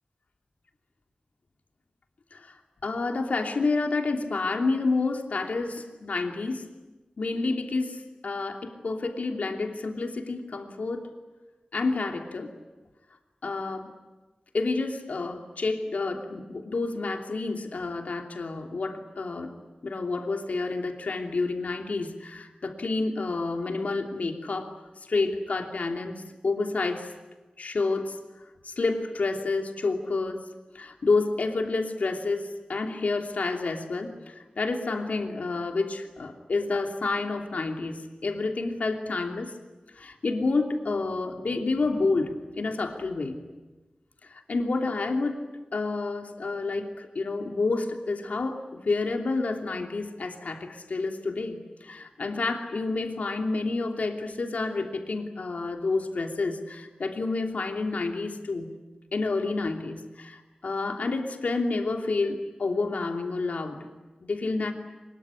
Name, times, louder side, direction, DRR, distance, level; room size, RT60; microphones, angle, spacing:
voice 1, 2.8-6.7 7.2-11.1 11.7-12.5 13.4-13.9 14.5-19.5 19.8-24.7 25.1-27.1 27.6-28.2 28.6-30.4 30.7-39.5 39.9-43.4 44.3-45.4 45.7-58.7 59.1-63.9 64.2-64.7, left 3 dB, 80° left, 3 dB, 2.9 m, -29 dB
24.5 x 22.0 x 9.8 m, 1.2 s
wide cardioid pair, 95°, 3 cm